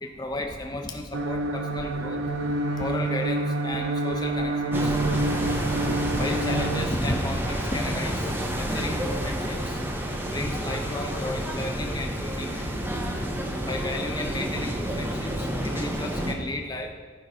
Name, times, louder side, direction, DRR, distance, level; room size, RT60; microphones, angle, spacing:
voice 1, 0.0-5.0 5.2-5.3 5.8-9.8 10.3-12.8 13.6-16.9, left 1 dB, 20° left, 2 dB, 0.9 m, -34 dB
sound 1, 1.1-6.9, right 2 dB, 80° right, 0.6 m, -28 dB
Bowed string instrument, 2.1-6.9, right 3 dB, 30° right, 1.4 m, -37 dB
sound 2, 4.7-16.3, equal, 10° right, 0.8 m, -29 dB
13.5 x 5.5 x 4.9 m, 1.5 s
head